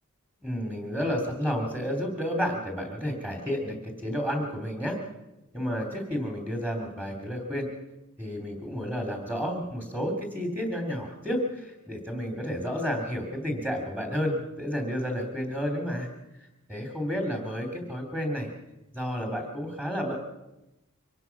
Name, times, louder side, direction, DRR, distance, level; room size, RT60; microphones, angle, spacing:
voice 1, 0.4-5.0 5.5-7.7 8.2-16.1 16.7-18.5 18.9-20.2, equal, 5° right, 3 dB, 3.2 m, -31 dB
24.0 x 18.5 x 6.0 m, 0.94 s
head